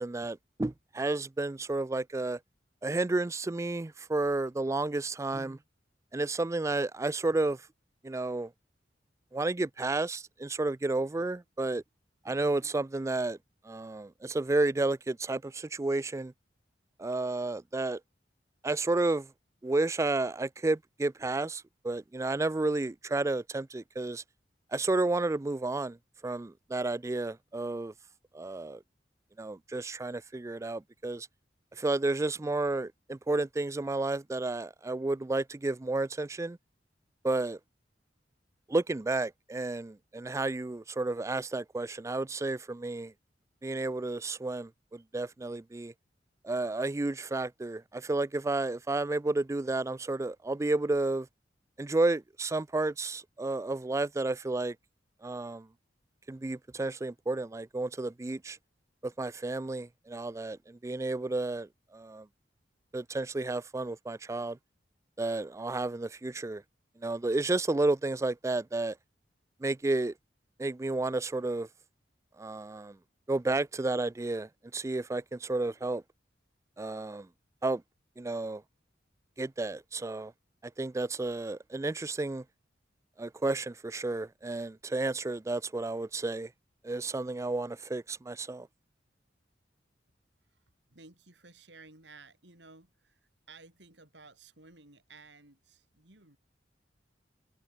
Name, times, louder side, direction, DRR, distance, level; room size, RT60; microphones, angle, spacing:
voice 1, 0.0-2.4 2.8-5.6 6.1-7.7 8.0-8.5 9.3-11.8 12.2-13.4 13.6-16.3 17.0-18.0 18.6-19.3 19.6-24.2 24.7-26.0 26.2-27.9 28.3-28.8 29.4-31.3 31.7-36.6 37.2-37.6 38.7-43.1 43.6-45.9 46.4-51.3 51.8-54.8 55.2-55.7 56.3-58.6 59.0-62.3 62.9-64.6 65.2-66.6 67.0-69.0 69.6-70.1 70.6-71.7 72.4-73.0 73.3-76.0 76.8-77.3 77.6-77.8 78.2-78.6 79.4-80.3 80.8-82.4 83.2-86.5 86.8-88.7, right 2 dB, 15° right, 0.4 m, -31 dB
voice 2, 90.5-96.4, right 3 dB, 70° right, 6.3 m, -55 dB
head